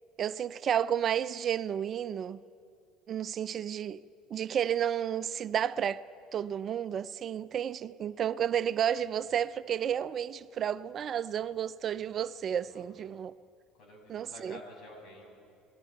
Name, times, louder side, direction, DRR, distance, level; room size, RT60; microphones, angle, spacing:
voice 1, 0.2-2.4 3.1-4.0 4.3-6.0 6.3-13.3 14.1-14.5, right 9 dB, 45° right, 0.5 m, -31 dB
voice 2, 8.9-9.4 12.7-12.9 13.1-13.4 13.7-15.3, left 2 dB, 60° left, 7.0 m, -51 dB
29.5 x 19.5 x 4.6 m
hypercardioid pair, 70°, 0 cm